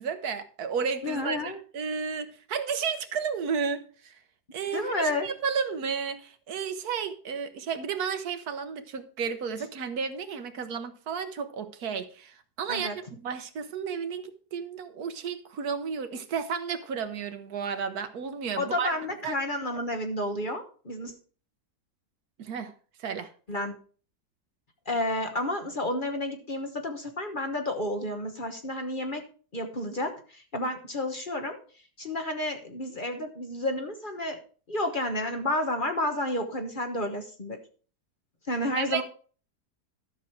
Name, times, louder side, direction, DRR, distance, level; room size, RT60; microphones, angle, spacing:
voice 1, 0.0-4.2 4.5-12.9 13.2-18.9 19.2-19.4 22.4-22.7 23.0-23.3 38.8-39.0, right 6 dB, 70° right, 1.4 m, -32 dB
voice 2, 1.0-1.6 4.7-5.3 12.7-12.9 18.6-21.1 23.5-23.7 24.9-29.2 29.5-31.6 32.0-34.4 34.7-37.6 38.5-39.0, left 1 dB, 35° left, 1.2 m, -31 dB
12.5 x 6.3 x 4.5 m
omnidirectional pair, 1.7 m